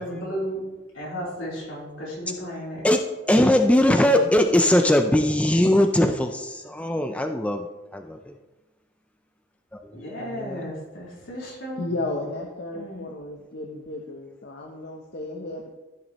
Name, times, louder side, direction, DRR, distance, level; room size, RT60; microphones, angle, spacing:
voice 1, 0.0-2.8 3.7-4.8 9.9-11.9 12.7-13.1, equal, 75° left, -5 dB, 3.5 m, -34 dB
voice 2, 2.8-7.7 7.9-8.3 9.7-10.0 10.4-10.6, left 1 dB, 5° left, 5 dB, 0.4 m, -20 dB
voice 3, 11.8-15.7, left 2 dB, 55° left, 1 dB, 0.8 m, -33 dB
14.5 x 6.3 x 3.1 m, 1.1 s
head